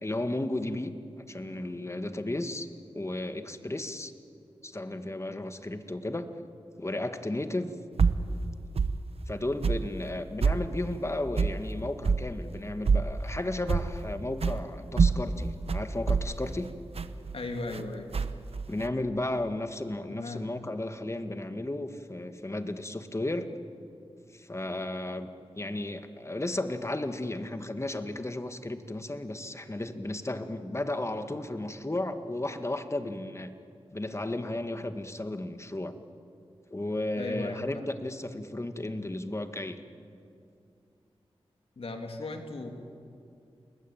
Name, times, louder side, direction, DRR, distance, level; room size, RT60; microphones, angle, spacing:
voice 1, 0.0-0.9 1.3-4.1 4.6-6.3 6.8-7.7 9.3-16.7 18.7-23.5 24.3-25.3 25.5-33.5 33.9-36.0 36.7-39.8, left 1 dB, 25° left, 8 dB, 1.9 m, -34 dB
sound 1, 8.0-8.3 8.8-9.0 9.6-9.9 10.4-10.6 11.4-11.6 12.0-12.2 12.9-13.1 13.7-14.0 14.4-14.6 15.0-17.8 18.1-18.9, right 5 dB, 75° right, 1.1 m, -25 dB
voice 2, 17.3-18.1 20.1-20.5 37.2-37.8 41.8-42.7, left 2 dB, 70° left, 4 dB, 3.0 m, -37 dB
29.0 x 20.5 x 8.9 m, 2.5 s
cardioid pair, 45°, 10 cm